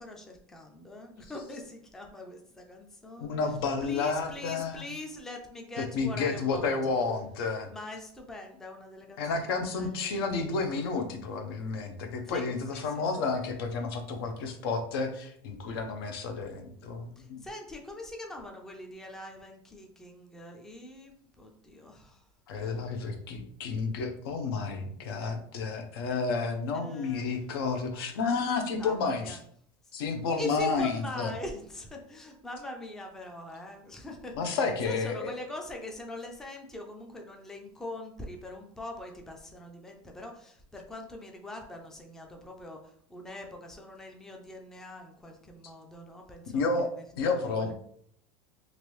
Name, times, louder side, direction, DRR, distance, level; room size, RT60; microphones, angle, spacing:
voice 1, 0.0-3.4 3.8-6.8 7.7-9.5 9.8-10.4 12.3-13.0 17.2-22.2 22.6-22.7 26.7-27.4 28.8-29.4 30.4-47.7, left 1 dB, 5° left, 2 dB, 0.3 m, -43 dB
voice 2, 3.2-4.8 5.8-7.7 9.2-17.4 22.5-29.4 29.9-31.3 34.4-35.3 46.5-46.9 47.2-47.7, left 4 dB, 85° left, 6 dB, 0.6 m, -31 dB
3.1 x 2.5 x 3.0 m, 0.64 s
supercardioid pair, 160°, 12 cm